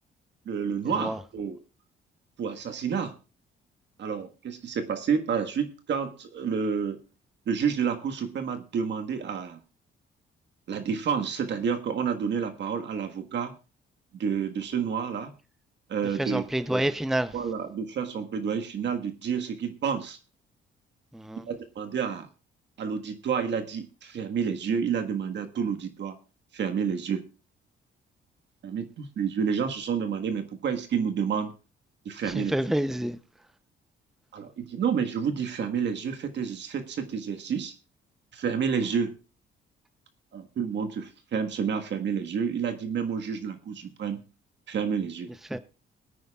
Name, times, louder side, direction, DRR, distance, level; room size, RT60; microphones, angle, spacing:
voice 1, 0.4-1.6 2.4-3.1 4.0-7.0 7.5-9.6 10.7-13.5 14.1-15.3 15.9-16.4 17.3-20.2 21.5-22.3 22.8-26.1 26.5-27.2 28.6-31.5 32.0-32.6 34.3-37.7 38.3-39.2 40.3-44.2 44.7-45.3, right 6 dB, 65° right, 1.6 m, -29 dB
voice 2, 16.2-17.3 21.1-21.5 32.3-33.2 45.5-45.6, right 1 dB, ahead, 0.7 m, -28 dB
22.0 x 9.3 x 2.4 m
cardioid pair, 90°, 20 cm